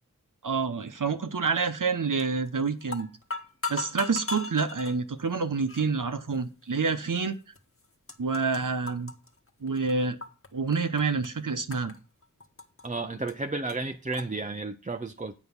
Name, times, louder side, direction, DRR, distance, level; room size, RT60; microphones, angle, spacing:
voice 1, 0.4-3.1 3.7-7.3 8.2-9.1 9.6-10.2 10.5-11.9, right 4 dB, 70° right, 1.0 m, -28 dB
sound 1, 2.2-2.5 2.8-4.9 5.7-5.9 6.6-6.7 7.5-7.6 7.8-8.6 8.9-10.5 10.7-11.3 11.7-12.9 13.3-13.4 13.7-13.8 14.1-14.3, left 3 dB, 40° left, 1.3 m, -36 dB
voice 2, 12.8-15.3, right 3 dB, 25° right, 0.6 m, -32 dB
8.1 x 5.5 x 7.1 m
wide cardioid pair, 45°, 33 cm